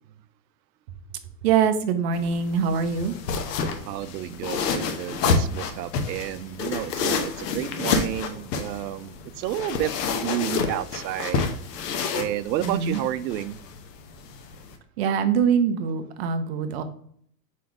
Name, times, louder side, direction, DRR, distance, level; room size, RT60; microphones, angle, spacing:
voice 1, 1.4-3.1 12.6-13.0 15.0-16.8, right 7 dB, 40° right, 8 dB, 0.7 m, -23 dB
sound 1, 2.1-14.8, left 5 dB, 70° left, 1.1 m, -29 dB
voice 2, 3.9-11.5 12.1-13.6, right 13 dB, 85° right, 16 dB, 0.6 m, -31 dB
4.6 x 4.2 x 4.8 m, 0.63 s
supercardioid pair, 165°, 50 cm